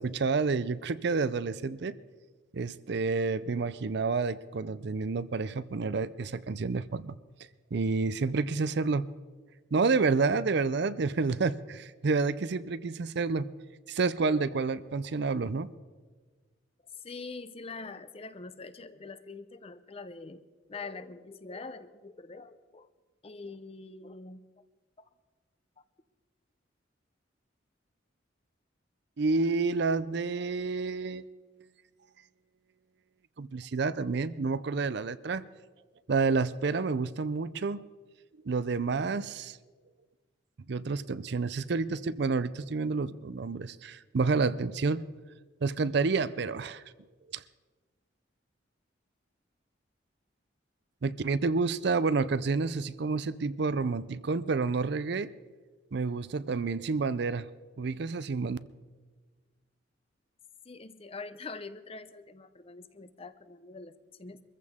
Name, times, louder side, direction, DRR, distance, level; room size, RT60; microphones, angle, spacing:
voice 1, 0.0-2.0 2.5-7.2 7.7-9.1 9.7-13.5 13.9-15.7 29.2-31.3 33.4-35.4 36.1-37.8 38.4-39.6 40.7-45.1 45.6-46.8 47.3-47.4 51.0-55.3 55.9-57.5 57.8-58.6, right 4 dB, 60° right, 16 dB, 0.5 m, -29 dB
voice 2, 16.9-22.9 23.2-24.4 25.0-25.1 60.6-64.4, left 3 dB, 30° left, 12 dB, 0.6 m, -44 dB
23.5 x 14.5 x 3.6 m, 1.4 s
head